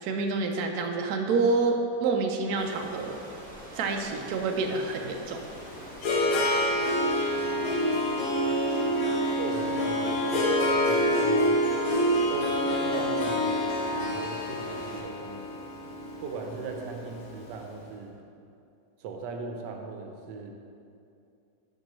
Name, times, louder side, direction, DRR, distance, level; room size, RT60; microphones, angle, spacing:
voice 1, 0.0-3.2 3.7-5.5, right 3 dB, 70° right, 3 dB, 1.1 m, -28 dB
sound 1, 2.6-15.0, equal, 5° left, 1.0 m, -45 dB
Harp, 5.3-17.5, equal, 80° left, 1.6 m, -27 dB
voice 2, 7.3-7.9 9.4-11.6 12.3-13.6 13.9-15.6 16.2-18.2 19.0-20.5, right 4 dB, 90° right, 3 dB, 1.3 m, -39 dB
7.9 x 6.1 x 3.0 m, 2.6 s
omnidirectional pair, 1.8 m